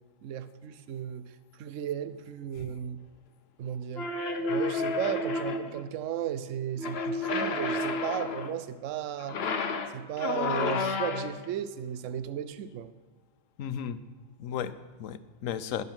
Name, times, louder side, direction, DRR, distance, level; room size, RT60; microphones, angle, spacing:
voice 1, 0.2-3.0 3.6-4.1 4.5-9.4 9.9-12.9, right 9 dB, 70° right, 13 dB, 1.0 m, -35 dB
sound 1, 4.0-5.8 6.8-8.6 9.2-11.5, left 3 dB, 55° left, 1.1 m, -31 dB
voice 2, 13.6-14.0 14.4-15.8, left 9 dB, 75° left, 13 dB, 1.1 m, -35 dB
19.5 x 6.8 x 5.8 m, 1.4 s
omnidirectional pair, 1.4 m